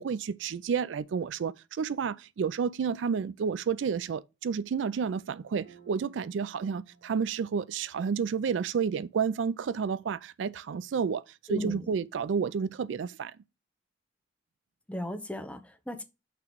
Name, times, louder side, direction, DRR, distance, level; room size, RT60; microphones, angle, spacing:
voice 1, 0.0-11.2 11.5-13.4, right 6 dB, 85° right, 0.4 m, -30 dB
sound 1, 4.9-9.4, right 5 dB, 70° right, 2.8 m, -61 dB
voice 2, 11.5-12.0 14.9-16.0, equal, 5° left, 0.7 m, -36 dB
6.1 x 3.1 x 5.1 m
head